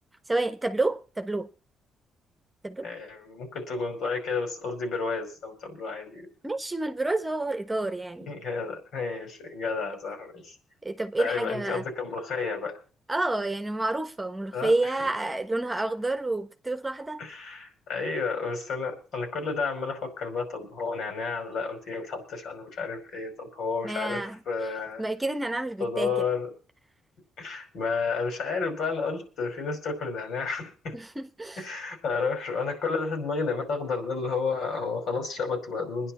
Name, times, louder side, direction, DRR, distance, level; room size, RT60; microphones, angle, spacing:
voice 1, 0.3-1.5 2.6-2.9 6.4-8.3 10.8-11.8 13.1-17.2 23.8-24.4 25.0-26.1 30.9-31.6, right 2 dB, 15° right, 1.2 m, -29 dB
voice 2, 2.8-6.3 8.3-10.6 11.2-12.8 14.5-15.0 17.2-25.0 25.8-26.5 27.4-31.0 31.6-36.1, left 4 dB, 70° left, 5.2 m, -31 dB
22.0 x 10.5 x 4.4 m
cardioid pair, 90°, 0 cm